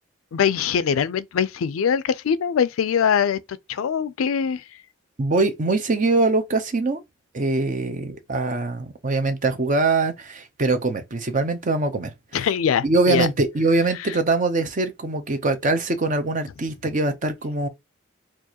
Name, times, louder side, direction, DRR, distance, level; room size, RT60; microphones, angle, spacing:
voice 1, 0.3-3.4 3.7-4.6 12.3-13.3 14.0-14.2, left 7 dB, 85° left, 0.4 m, -22 dB
voice 2, 5.2-7.0 7.3-12.1 12.8-17.7, right 3 dB, 40° right, 0.6 m, -23 dB
4.5 x 2.5 x 2.8 m
head